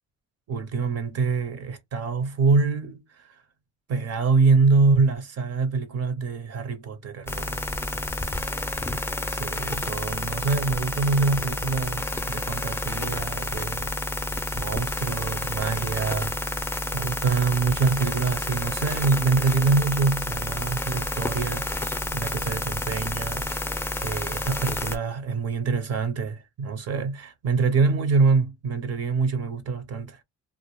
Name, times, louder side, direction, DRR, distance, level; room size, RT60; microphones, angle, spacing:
voice 1, 0.5-3.4 3.9-7.7 8.9-9.0 9.3-13.9 14.5-21.8 22.1-23.5 24.0-30.2, right 4 dB, 55° right, 0.6 m, -25 dB
sound 1, 7.3-25.0, left 2 dB, 10° left, 0.4 m, -30 dB
2.1 x 2.0 x 2.9 m
cardioid pair, 90°, 30 cm